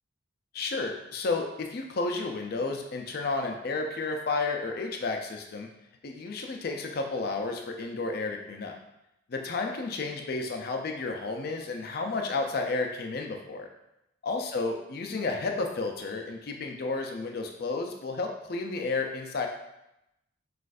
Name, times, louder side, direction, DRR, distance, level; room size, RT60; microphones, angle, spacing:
voice 1, 0.5-5.7 6.0-8.8 9.3-13.7 14.2-19.5, left 3 dB, 50° left, 3 dB, 0.4 m, -32 dB
6.1 x 2.5 x 2.5 m, 0.87 s
head